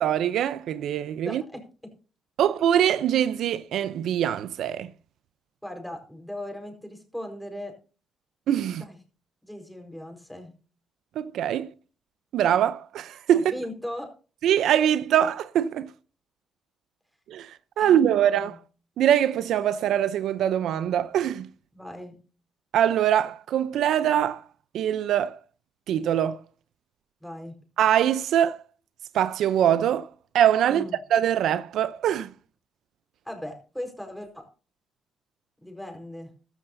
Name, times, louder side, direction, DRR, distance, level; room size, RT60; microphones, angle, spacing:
voice 1, 0.0-1.4 2.4-4.9 8.5-8.8 11.2-11.7 12.3-13.4 14.4-15.9 17.3-18.6 19.0-21.5 22.7-24.4 24.7-25.4 25.9-26.4 27.8-28.6 29.1-30.1 30.3-30.8 31.1-32.3, right 10 dB, 75° right, 0.6 m, -23 dB
voice 2, 1.2-1.9 5.6-7.7 8.7-9.0 9.4-10.5 13.3-14.1 17.8-18.5 21.7-22.2 27.2-27.5 30.7-30.9 33.2-34.4 35.6-36.3, left 1 dB, ahead, 4.5 m, -38 dB
14.5 x 13.0 x 2.7 m
cardioid pair, 90°, 0 cm